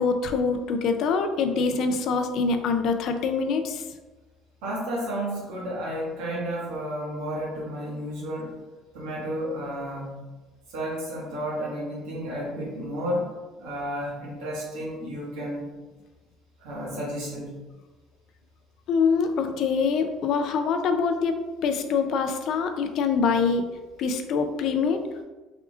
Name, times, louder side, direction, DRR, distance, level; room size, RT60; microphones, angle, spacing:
voice 1, 0.0-3.8 18.9-23.7 24.0-25.0, left 5 dB, 60° left, 7 dB, 0.4 m, -24 dB
voice 2, 4.6-8.6 8.9-10.1 10.7-13.3 13.6-15.7 16.6-17.5, equal, 85° right, -5 dB, 1.5 m, -32 dB
3.6 x 3.5 x 2.4 m, 1.2 s
cardioid pair, 120°, 0 cm